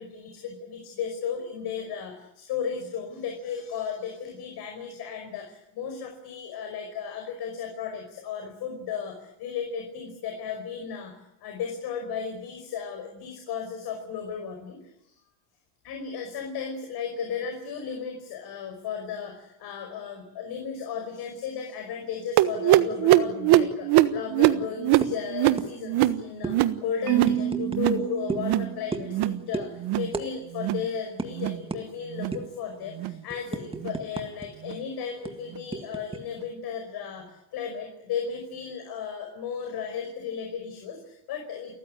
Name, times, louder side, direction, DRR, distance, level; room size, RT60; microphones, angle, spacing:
voice 1, 0.0-11.1 11.4-15.2 15.8-26.6 26.8-41.7, left 7 dB, 50° left, 4 dB, 5.4 m, -35 dB
sound 1, 22.4-27.4 27.7-28.1 28.3-28.7 29.0-29.4 29.8-30.1 30.5-30.9 31.3-31.6 32.1-32.4 32.9-33.2 33.8-34.0 34.7-34.8 35.5-35.6, right 14 dB, 50° right, 1.4 m, -23 dB
sound 2, 25.0-25.2 25.6-25.7 26.0-26.1 26.4-26.6 27.2-27.8 28.3-28.5 28.9-29.2 29.5-29.7 30.1-30.3 30.6-30.7 31.2-31.3 31.7-31.8 32.3-32.6 33.0-34.5 34.7-34.8 35.2-36.2, right 3 dB, 10° right, 1.9 m, -33 dB
Marimba xylophone, 27.1-29.3, right 13 dB, 70° right, 2.7 m, -30 dB
30.0 x 14.5 x 9.9 m, 0.84 s
cardioid pair, 140°, 49 cm